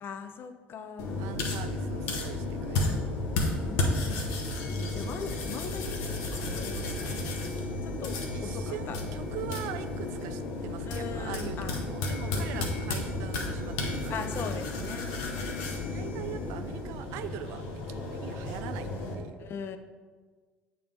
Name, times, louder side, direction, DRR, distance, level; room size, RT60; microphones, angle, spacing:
voice 1, 0.0-1.3 2.7-4.2 4.9-7.2 7.8-9.0 10.9-11.7 12.3-12.7 14.1-15.6 19.4-19.8, left 6 dB, 50° left, 9 dB, 0.5 m, -41 dB
sound 1, 1.0-19.1, left 2 dB, 65° left, 0.8 m, -33 dB
voice 2, 1.2-3.2 4.8-5.2 8.3-14.2 15.9-19.5, right 11 dB, 65° right, 11 dB, 0.3 m, -42 dB
8.4 x 3.8 x 3.4 m, 1.5 s
figure-of-eight pair, 55°, 5 cm